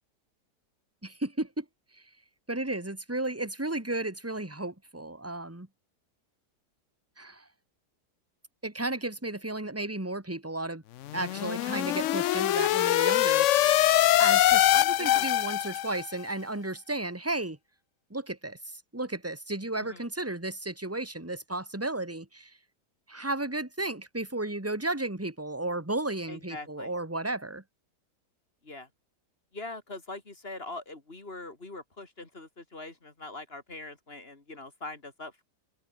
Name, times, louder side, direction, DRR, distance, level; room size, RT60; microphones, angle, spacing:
voice 1, 1.0-1.6 1.9-2.0 2.5-5.7 7.2-7.4 8.6-10.8 11.1-13.5 14.2-17.6 18.1-22.5 23.1-27.6, right 2 dB, 10° right, 2.6 m, -33 dB
sound 1, 11.0-16.1, left 14 dB, 75° left, 0.7 m, -23 dB
voice 2, 14.7-15.3 19.8-20.1 26.3-26.9 28.6-28.9 29.5-35.4, left 2 dB, 35° left, 3.3 m, -42 dB
omnidirectional pair, 1.8 m